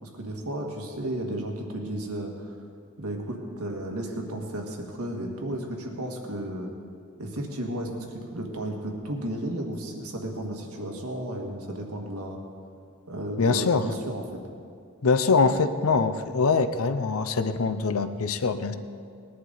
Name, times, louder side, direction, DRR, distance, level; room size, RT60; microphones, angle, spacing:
voice 1, 0.0-2.5 3.0-6.7 7.2-12.4 13.1-14.2, right 1 dB, 90° right, 1 dB, 1.8 m, -33 dB
voice 2, 13.4-13.9 15.0-18.7, left 4 dB, 70° left, 11 dB, 0.6 m, -23 dB
19.5 x 11.0 x 4.0 m, 2.3 s
head